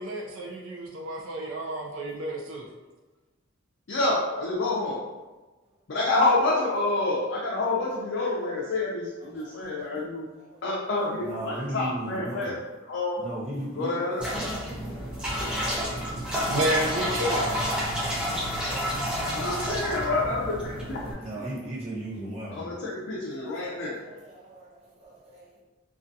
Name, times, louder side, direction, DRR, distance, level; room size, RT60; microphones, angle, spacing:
voice 1, 0.0-2.7 16.5-17.8, right 1 dB, 70° right, -1 dB, 0.4 m, -30 dB
voice 2, 3.9-5.0 5.9-10.3 10.6-12.6 12.9-13.2 13.8-14.2 19.4-21.2 22.5-24.0, left 2 dB, 60° left, -5 dB, 0.4 m, -28 dB
voice 3, 9.3-9.7 10.3-12.6 13.2-13.9 14.4-16.6 20.7-22.8 23.4-25.6, right 1 dB, 30° right, -8 dB, 0.8 m, -39 dB
sound 1, 14.2-21.1, equal, 5° right, 0.5 m, -30 dB
2.4 x 2.3 x 2.6 m, 1.2 s
head